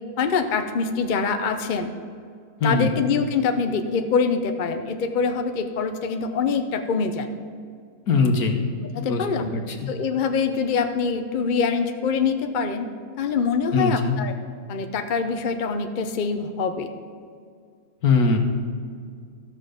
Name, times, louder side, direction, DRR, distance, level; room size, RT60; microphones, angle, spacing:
voice 1, 0.2-1.9 2.6-7.3 8.8-9.5 9.9-12.9 13.2-14.3 14.7-16.9, left 5 dB, 50° left, 6 dB, 0.6 m, -24 dB
voice 2, 2.6-2.9 8.1-8.6 9.0-9.2 9.5-9.8 13.7-14.2 18.0-18.4, left 4 dB, 70° left, 4 dB, 1.6 m, -21 dB
14.0 x 6.6 x 5.1 m, 2.2 s
omnidirectional pair, 1.7 m